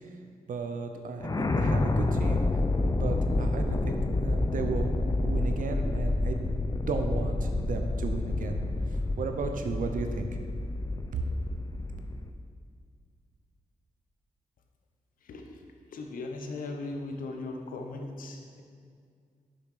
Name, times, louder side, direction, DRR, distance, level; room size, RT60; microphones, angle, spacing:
voice 1, 0.5-6.5 6.8-8.6 8.9-10.3 11.1-11.2, right 4 dB, 75° right, 6 dB, 0.8 m, -35 dB
sound 1, 1.2-12.3, left 2 dB, 25° left, 0.6 m, -29 dB
voice 2, 15.9-18.6, left 2 dB, 90° left, 3 dB, 0.8 m, -38 dB
7.0 x 6.0 x 4.8 m, 2.2 s
cardioid pair, 60°, 14 cm